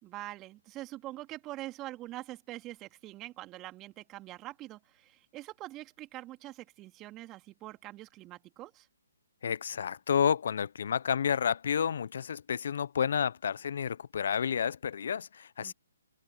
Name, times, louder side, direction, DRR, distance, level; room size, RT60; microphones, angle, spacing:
voice 1, 0.0-8.9 15.6-15.7, right 16 dB, 20° right, 2.9 m, -44 dB
voice 2, 9.4-15.7, left 7 dB, 60° left, 0.9 m, -30 dB
figure-of-eight pair, 140°, 0 cm